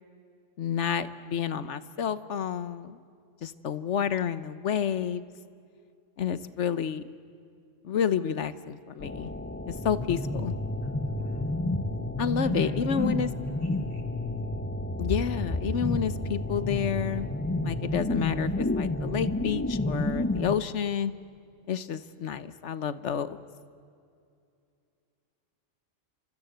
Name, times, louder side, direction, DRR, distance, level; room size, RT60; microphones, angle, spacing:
voice 1, 0.6-3.0 3.4-5.3 6.2-7.0 7.8-9.3 9.8-10.5 12.2-13.3 15.0-17.3 17.6-21.1 21.7-23.4, left 8 dB, 70° left, 14 dB, 1.3 m, -29 dB
sound 1, 9.0-20.6, left 2 dB, 15° left, 0.7 m, -30 dB
voice 2, 10.8-11.5 12.4-13.1 13.5-14.2, right 1 dB, 50° right, 2 dB, 3.0 m, -51 dB
28.0 x 26.0 x 8.0 m, 2.4 s
omnidirectional pair, 1.3 m